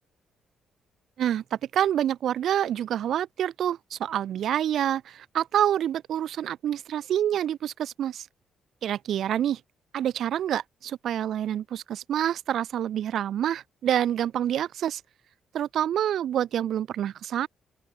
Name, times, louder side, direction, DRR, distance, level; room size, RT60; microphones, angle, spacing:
voice 1, 1.2-8.3 8.8-9.6 9.9-15.0 15.5-17.5, right 10 dB, 70° right, 0.6 m, -27 dB
open air
cardioid pair, 90°, 0 cm